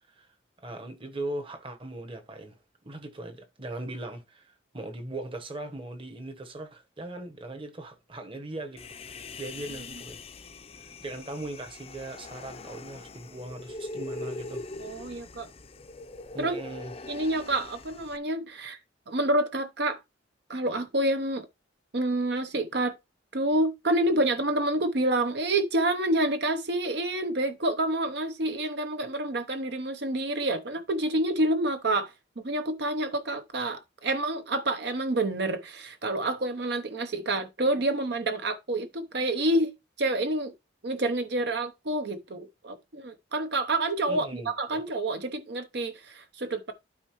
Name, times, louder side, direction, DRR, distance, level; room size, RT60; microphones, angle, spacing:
voice 1, 0.6-2.6 2.8-9.0 9.4-10.2 10.8-14.6 14.9-15.1 16.3-16.9 44.1-44.8, right 1 dB, 25° right, 1.1 m, -39 dB
Human voice, 8.8-18.2, left 3 dB, 30° left, 0.6 m, -42 dB
voice 2, 14.8-15.5 16.4-16.6 17.1-18.8 19.1-20.0 20.5-21.4 21.9-23.0 23.3-32.1 32.4-39.7 40.0-40.5 40.8-46.7, right 1 dB, 55° right, 0.8 m, -28 dB
12.5 x 4.5 x 3.0 m
head